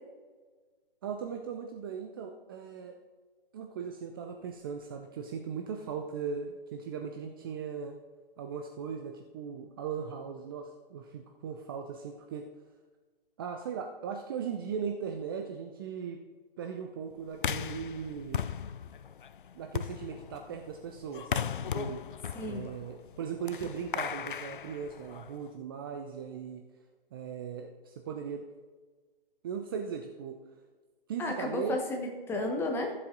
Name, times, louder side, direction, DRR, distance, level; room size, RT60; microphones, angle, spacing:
voice 1, 1.0-3.0 3.5-8.0 8.4-12.5 13.4-16.2 16.6-18.4 19.5-22.0 22.5-26.6 27.1-28.4 29.4-30.4 31.1-31.8, right 6 dB, 25° right, 4 dB, 0.6 m, -38 dB
sound 1, 17.3-25.5, left 8 dB, 60° left, 0.5 m, -37 dB
voice 2, 22.3-22.7 31.2-32.9, left 2 dB, 10° left, 3 dB, 1.0 m, -33 dB
14.0 x 7.5 x 3.8 m, 1.4 s
figure-of-eight pair, 135°, 29 cm